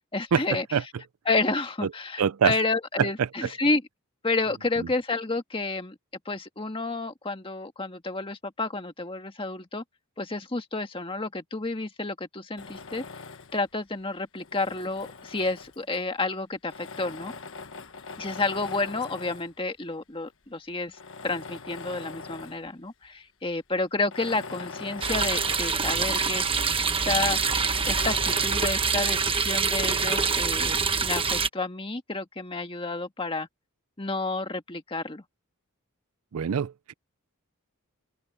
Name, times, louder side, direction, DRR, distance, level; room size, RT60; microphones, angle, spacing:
voice 1, 0.1-0.7 1.3-3.8 4.2-6.0 6.3-9.8 10.2-13.0 13.5-17.3 18.2-21.0 21.2-26.5 27.0-27.6 27.9-33.5 34.0-35.2, left 3 dB, 25° left, 1.7 m, -30 dB
voice 2, 2.2-2.5 3.0-3.5 4.8-4.9 36.3-36.9, right 7 dB, 75° right, 0.4 m, -25 dB
Tools, 12.6-13.7 14.3-16.0 16.6-19.6 20.3-20.4 20.9-22.7 23.0-23.1 24.0-26.4 26.8-26.9 27.3-28.6 29.6-30.6, left 4 dB, 60° left, 1.4 m, -42 dB
sound 1, 25.0-31.5, right 5 dB, 25° right, 1.2 m, -25 dB
open air
head